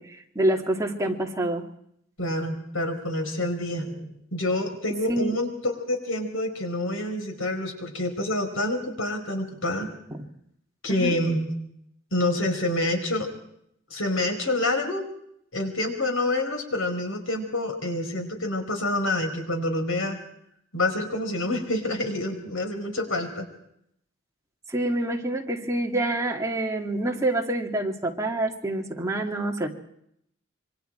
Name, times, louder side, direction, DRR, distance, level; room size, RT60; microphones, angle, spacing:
voice 1, 0.0-1.7 5.1-5.3 10.1-10.3 10.9-11.2 24.7-29.7, right 1 dB, 15° right, 0 dB, 2.5 m, -27 dB
voice 2, 2.2-9.9 10.8-11.5 12.1-13.3 13.9-15.0 15.5-20.2 20.7-23.5, left 1 dB, 85° left, 5 dB, 4.7 m, -27 dB
26.5 x 23.5 x 4.6 m, 0.72 s
head